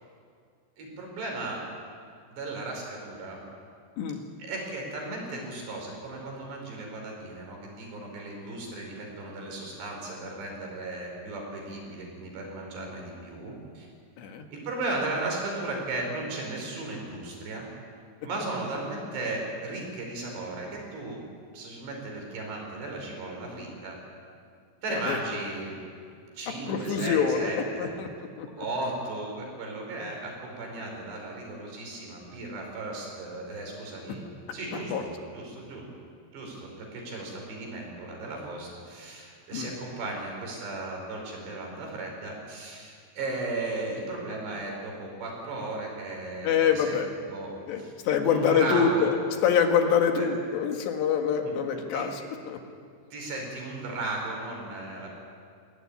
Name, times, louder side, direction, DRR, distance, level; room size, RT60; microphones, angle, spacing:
voice 1, 0.8-1.6 2.3-3.4 4.4-13.9 14.5-17.7 18.2-21.2 21.5-24.0 24.8-25.8 26.4-27.9 28.6-34.2 34.5-35.1 35.3-35.9 36.3-47.0 47.3-47.9 48.2-49.1 50.2-50.3 51.4-52.0 53.1-55.1, right 2 dB, 75° right, 1 dB, 7.1 m, -35 dB
voice 2, 26.7-28.5 34.9-35.0 39.5-39.7 46.4-47.1 47.7-49.1 49.4-52.2 52.5-52.6, left 7 dB, 80° left, 4 dB, 3.9 m, -25 dB
22.0 x 17.0 x 9.8 m, 2.2 s
omnidirectional pair, 5.0 m